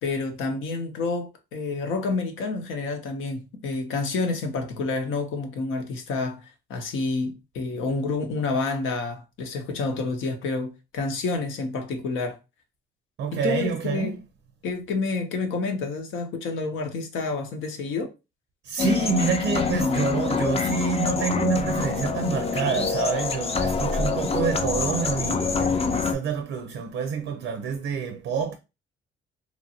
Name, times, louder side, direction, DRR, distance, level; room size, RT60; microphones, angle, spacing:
voice 1, 0.0-12.4 13.3-14.1 14.6-18.1, left 3 dB, 85° left, 0.8 m, -29 dB
voice 2, 13.2-14.1 18.6-28.6, right 6 dB, 75° right, 0.5 m, -27 dB
sound 1, 18.8-26.1, left 5 dB, 30° left, 0.5 m, -26 dB
2.9 x 2.5 x 2.7 m
cardioid pair, 90°, 20 cm